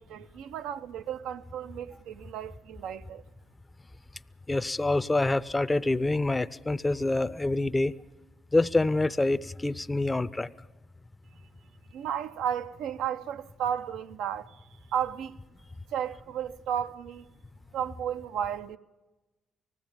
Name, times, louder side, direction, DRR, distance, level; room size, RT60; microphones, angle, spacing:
voice 1, 0.0-3.2 11.9-14.6 14.9-15.4 15.9-17.3 17.7-18.8, right 9 dB, 75° right, 0.6 m, -33 dB
voice 2, 4.5-8.0 8.5-10.5, left 2 dB, 20° left, 0.7 m, -26 dB
20.0 x 15.0 x 9.0 m
hypercardioid pair, 50°, 0 cm